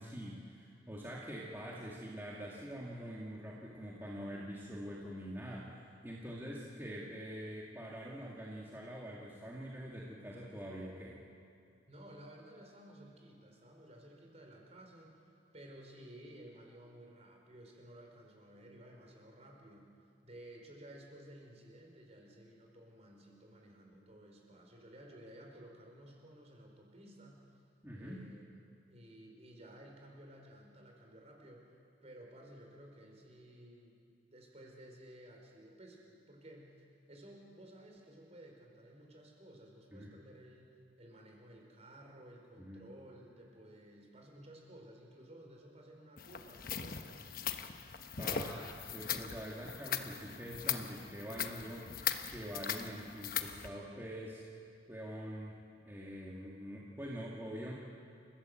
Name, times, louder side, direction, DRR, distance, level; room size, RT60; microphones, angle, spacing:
voice 1, 0.0-11.2 27.8-28.3 39.9-40.1 42.6-42.8 48.2-54.4 54.9-55.6 55.8-57.7, equal, 15° right, -5 dB, 2.2 m, -45 dB
voice 2, 11.9-19.9 20.2-27.6 27.9-31.8 32.0-34.0 34.3-47.4 48.2-48.6, right 1 dB, 35° right, 0 dB, 4.6 m, -55 dB
sound 1, 46.2-53.7, left 8 dB, 50° left, 1.1 m, -40 dB
29.5 x 16.0 x 7.9 m, 2.4 s
head